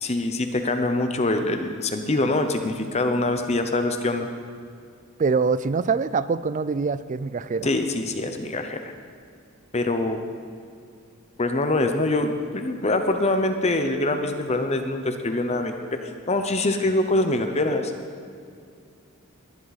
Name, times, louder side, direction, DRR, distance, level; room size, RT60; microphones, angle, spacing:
voice 1, 0.0-4.3 7.6-8.9 9.7-10.2 11.4-15.7 16.0-17.9, left 2 dB, 30° left, 6 dB, 0.8 m, -24 dB
voice 2, 5.2-7.7, right 4 dB, 35° right, 16 dB, 0.3 m, -24 dB
21.0 x 10.5 x 4.1 m, 2.3 s
head